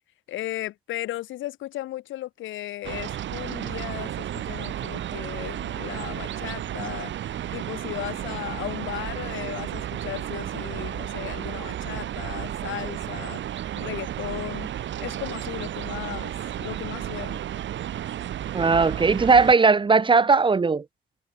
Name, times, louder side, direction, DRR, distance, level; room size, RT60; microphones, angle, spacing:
voice 1, 0.3-7.1 7.5-13.4 13.8-14.7 15.0-16.3 16.6-17.4, left 15 dB, 80° left, 0.7 m, -36 dB
sound 1, 2.8-19.5, right 11 dB, 70° right, 2.1 m, -33 dB
voice 2, 18.5-20.8, right 4 dB, 25° right, 0.8 m, -18 dB
cardioid pair, 90°, 20 cm